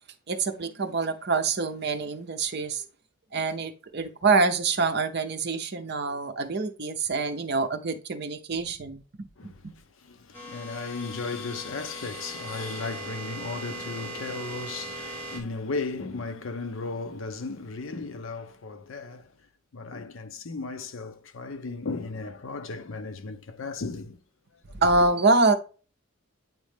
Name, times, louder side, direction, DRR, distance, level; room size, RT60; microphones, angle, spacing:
voice 1, 0.3-2.8 3.3-9.7 24.8-25.5, right 3 dB, 50° right, 0.7 m, -26 dB
voice 2, 9.4-19.3 19.7-24.2 24.7-24.8, left 3 dB, 65° left, 0.6 m, -35 dB
sound 1, 10.3-15.4, right 1 dB, 10° left, 1.4 m, -39 dB
8.9 x 3.2 x 3.3 m
head